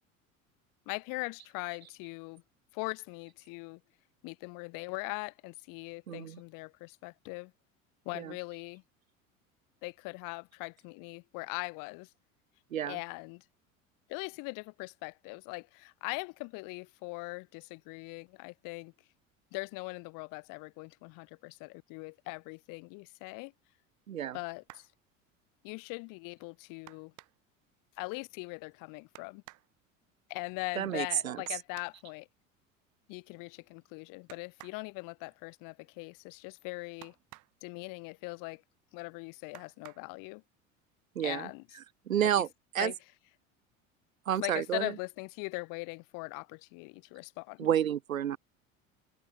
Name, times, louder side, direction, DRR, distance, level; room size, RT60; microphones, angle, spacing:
voice 1, 0.9-2.4 2.7-3.8 4.2-7.5 8.0-8.8 9.8-12.1 12.9-13.4 14.1-18.9 19.5-23.5 24.3-24.9 25.6-27.1 28.0-29.4 30.3-32.3 33.1-37.1 37.6-38.6 38.9-40.4 41.2-41.6 42.4-42.5 42.8-43.0 44.3-47.7, left 29 dB, 50° left, 3.3 m, -41 dB
voice 2, 6.1-6.4 8.1-8.3 12.7-13.0 24.1-24.4 30.8-31.4 41.2-41.5 42.1-42.5 42.7-42.9 44.3-44.9 47.6-48.4, right 10 dB, 75° right, 0.9 m, -30 dB
sound 1, 24.6-25.0 26.8-27.6 29.1-29.7 31.4-32.0 34.3-34.9 37.0-37.6 39.5-40.1 41.2-41.3 41.8-42.0, right 19 dB, 45° right, 5.1 m, -53 dB
open air
figure-of-eight pair, 70°, 41 cm